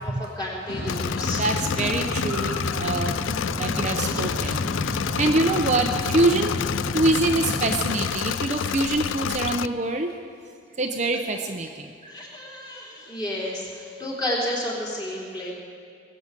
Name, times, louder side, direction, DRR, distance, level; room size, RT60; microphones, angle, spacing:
voice 1, 0.0-1.4 4.0-4.5 12.0-15.5, left 1 dB, 20° left, -5 dB, 3.3 m, -31 dB
sound 1, 0.7-8.1, left 1 dB, 90° left, 1.8 m, -30 dB
Engine / Mechanisms, 0.9-9.7, left 9 dB, 70° left, 0.3 m, -29 dB
voice 2, 1.2-3.1 3.6-6.5 6.9-10.1 10.8-11.9, right 2 dB, 35° right, 4 dB, 0.7 m, -25 dB
20.5 x 7.9 x 8.2 m, 2.2 s
head